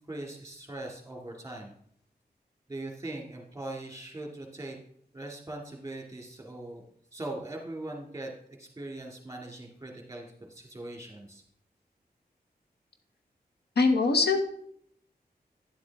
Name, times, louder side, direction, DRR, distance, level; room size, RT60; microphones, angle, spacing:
voice 1, 0.1-1.7 2.7-4.8 5.1-6.8 7.1-8.3 8.6-11.4, right 2 dB, 20° right, 0 dB, 2.3 m, -40 dB
voice 2, 13.8-14.4, left 3 dB, 90° left, 6 dB, 1.1 m, -22 dB
10.5 x 7.6 x 3.5 m, 0.67 s
wide cardioid pair, 75°, 16 cm